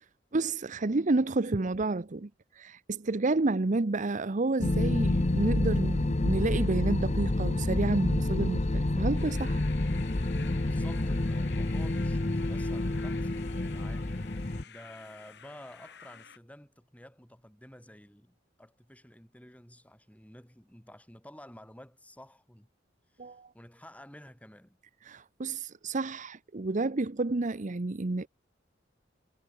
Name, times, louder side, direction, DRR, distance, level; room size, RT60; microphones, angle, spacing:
voice 1, 0.3-2.3 2.6-9.6 23.2-23.5 25.1-28.3, right 2 dB, 40° right, 0.8 m, -30 dB
sound 1, 4.6-14.6, left 2 dB, 40° left, 0.9 m, -28 dB
sound 2, 9.2-16.4, left 7 dB, 65° left, 6.6 m, -50 dB
voice 2, 10.6-22.7 23.1-24.8, left 1 dB, 10° left, 7.1 m, -51 dB
head